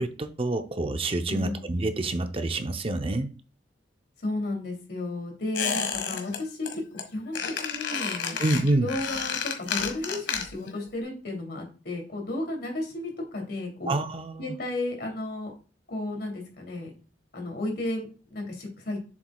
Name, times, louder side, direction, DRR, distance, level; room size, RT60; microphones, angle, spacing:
voice 1, 0.0-3.3 8.4-8.9 13.9-14.6, right 2 dB, 30° right, 0.6 m, -27 dB
voice 2, 1.3-1.6 4.2-6.7 7.1-8.4 8.8-13.9 14.4-15.5 15.9-16.9 17.3-19.0, left 2 dB, 60° left, 2.9 m, -33 dB
Squeak, 5.5-6.4 6.6-7.0 7.3-10.7 11.0-11.1, left 6 dB, 90° left, 1.6 m, -31 dB
7.4 x 6.9 x 2.3 m
head